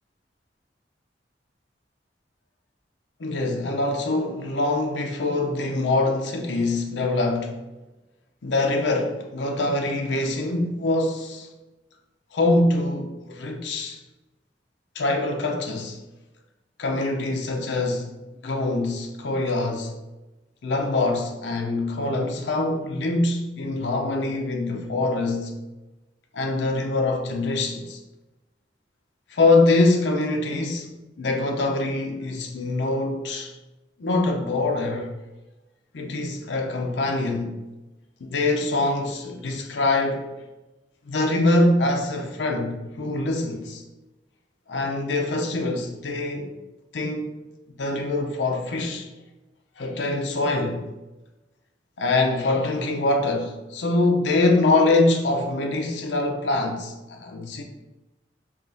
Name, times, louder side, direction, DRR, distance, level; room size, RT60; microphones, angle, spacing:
voice 1, 3.2-7.6 8.4-11.5 12.3-14.0 15.0-16.0 16.8-18.1 18.4-20.0 20.6-25.5 26.3-28.0 29.3-30.9 31.2-33.5 34.0-35.1 35.9-37.6 38.2-40.3 41.1-43.8 44.7-46.5 46.9-47.3 47.8-49.1 49.8-50.9 52.0-57.6, left 2 dB, 90° left, 0.5 m, -24 dB
5.0 x 2.4 x 2.6 m
head